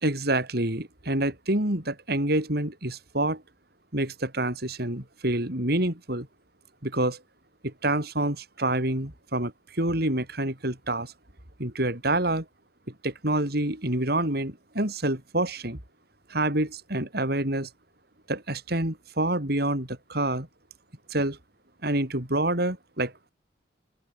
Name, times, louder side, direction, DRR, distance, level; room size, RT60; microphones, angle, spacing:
voice 1, 0.0-3.4 3.9-6.3 6.8-7.2 7.6-11.1 11.6-12.4 13.0-15.8 16.3-17.7 18.3-20.5 21.1-21.4 21.8-23.3, right 1 dB, 60° right, 5.0 m, -27 dB
open air
head